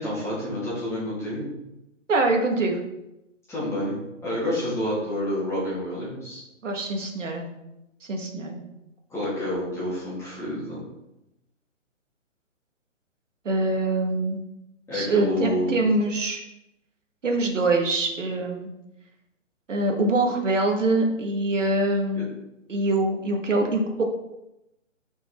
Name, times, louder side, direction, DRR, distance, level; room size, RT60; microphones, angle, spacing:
voice 1, 0.0-1.5 3.5-6.4 9.1-10.8 14.9-15.8 22.1-22.2, left 1 dB, 5° left, -9 dB, 2.8 m, -29 dB
voice 2, 2.1-2.8 6.6-7.5 8.0-8.6 13.5-14.4 14.9-16.4 17.2-18.7 19.7-22.3 22.7-24.0, right 2 dB, 70° right, 3 dB, 1.8 m, -24 dB
5.9 x 5.6 x 4.4 m, 0.91 s
figure-of-eight pair, 145°, 39 cm